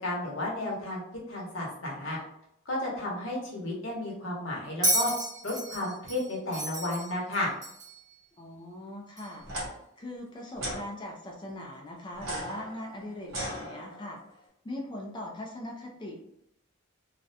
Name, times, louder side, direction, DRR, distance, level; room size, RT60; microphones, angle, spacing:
voice 1, 0.0-1.0 1.3-2.2 2.7-5.1 5.4-7.5, left 1 dB, 65° left, -3 dB, 0.8 m, -32 dB
Bell, 4.8-8.0 9.2-9.3, right 1 dB, 15° right, 0.7 m, -31 dB
voice 2, 8.4-14.4 14.6-16.2, left 1 dB, 20° left, -1 dB, 0.4 m, -41 dB
sound 1, 9.4-9.7 10.6-10.8 12.1-14.2, right 1 dB, 60° right, 0.9 m, -37 dB
2.4 x 2.1 x 2.6 m, 0.76 s
head